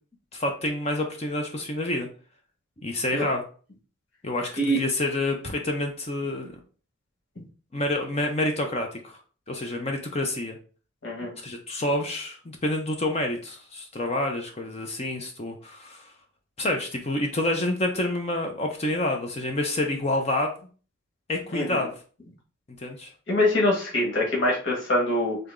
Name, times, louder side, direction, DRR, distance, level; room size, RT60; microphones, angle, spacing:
voice 1, 0.3-2.1 2.8-3.4 4.2-6.5 7.7-9.2 9.5-10.6 11.4-16.1 16.6-20.5 21.3-21.9 22.8-23.1, left 1 dB, 30° left, 2 dB, 0.6 m, -28 dB
voice 2, 11.0-11.3 21.5-21.8 23.3-25.4, left 1 dB, 60° left, -3 dB, 1.7 m, -24 dB
3.9 x 3.4 x 3.6 m, 0.39 s
head